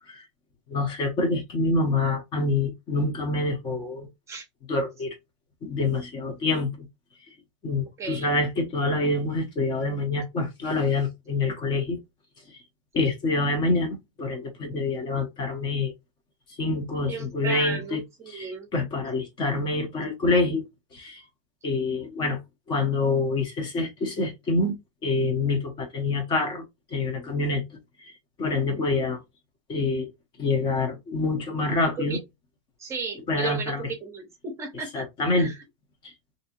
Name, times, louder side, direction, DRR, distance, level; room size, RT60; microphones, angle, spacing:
voice 1, 0.7-4.1 4.7-5.2 5.6-6.9 7.6-12.0 12.9-15.9 16.6-18.0 18.3-20.7 20.9-21.2 21.6-22.4 22.7-24.7 25.0-26.6 26.9-27.6 28.4-29.2 29.7-30.1 30.4-32.2 33.3-33.9 34.9-35.5, left 3 dB, 30° left, 0.9 m, -26 dB
voice 2, 8.0-8.3 17.1-18.7 32.1-32.2 32.8-35.1 35.4-35.6, right 5 dB, 20° right, 0.7 m, -34 dB
3.1 x 2.7 x 2.9 m
supercardioid pair, 140°, 16 cm